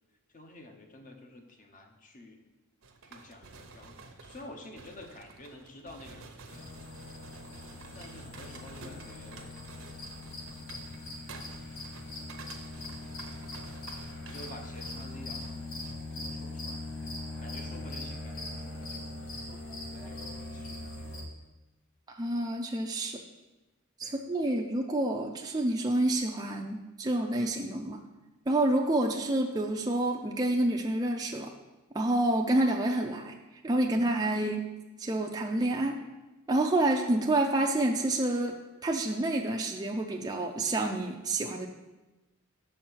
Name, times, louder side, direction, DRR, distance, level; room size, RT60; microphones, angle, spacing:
voice 1, 0.3-2.5 3.1-6.8 7.9-9.6 10.7-11.4 12.0-12.3 13.9-17.1 17.4-19.5 19.9-21.3 24.0-24.5 34.1-34.3, left 1 dB, 40° left, 4 dB, 0.8 m, -50 dB
sound 1, 2.8-16.0, right 4 dB, 70° right, 0.8 m, -50 dB
sound 2, 6.5-21.2, left 2 dB, 70° left, 1.5 m, -41 dB
voice 2, 22.1-23.2 24.0-28.0 28.5-31.5 31.9-33.3 33.6-34.6 35.0-36.0 36.5-41.7, right 1 dB, 20° right, 1 dB, 0.4 m, -28 dB
6.4 x 4.4 x 6.1 m, 1.1 s
head